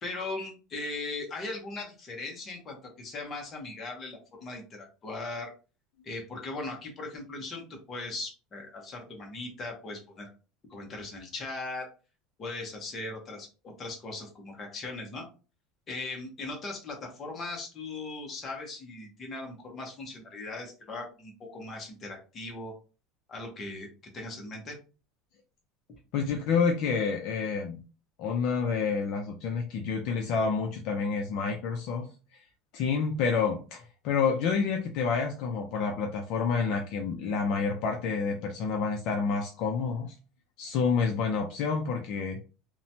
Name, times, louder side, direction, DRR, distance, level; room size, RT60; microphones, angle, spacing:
voice 1, 0.0-5.5 6.0-10.3 10.7-11.9 12.4-15.3 15.9-22.7 23.3-24.8, left 2 dB, 20° left, 1 dB, 0.7 m, -39 dB
voice 2, 26.1-27.8 28.2-32.1 32.7-40.1 40.6-42.4, left 5 dB, 45° left, 2 dB, 0.4 m, -28 dB
3.0 x 2.1 x 2.6 m, 0.34 s
cardioid pair, 180°, 0 cm